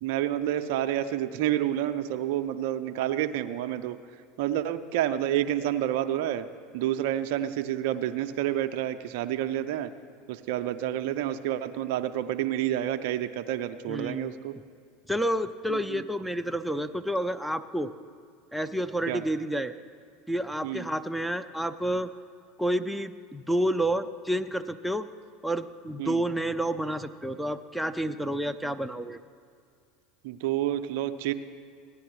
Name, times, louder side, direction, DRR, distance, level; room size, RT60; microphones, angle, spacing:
voice 1, 0.0-4.0 4.4-6.5 6.7-9.9 10.3-14.6 15.7-16.0 19.1-19.2 20.6-20.9 26.0-26.2 30.2-31.3, right 12 dB, 65° right, 10 dB, 0.4 m, -29 dB
voice 2, 13.9-14.3 15.1-17.9 18.5-19.7 20.3-22.1 22.6-25.1 25.4-29.2, right 1 dB, ahead, 8 dB, 0.4 m, -29 dB
16.0 x 9.8 x 3.1 m, 2.3 s
hypercardioid pair, 80°, 0 cm